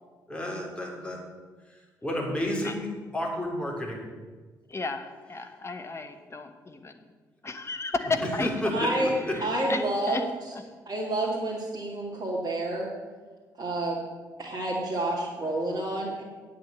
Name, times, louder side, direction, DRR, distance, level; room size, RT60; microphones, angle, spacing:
voice 1, 0.3-1.2 1.7-2.9 3.1-4.0 8.0-9.4, left 1 dB, 10° left, -2 dB, 3.6 m, -31 dB
voice 2, 4.7-6.9 7.4-8.5 9.4-9.8 10.1-10.2, left 3 dB, 25° left, 6 dB, 1.2 m, -33 dB
voice 3, 8.7-9.1 9.4-10.3 10.9-12.9 13.6-14.0 14.4-16.2, right 1 dB, 40° right, -5 dB, 2.3 m, -29 dB
8.7 x 8.4 x 7.7 m, 1.4 s
figure-of-eight pair, 40°, 10 cm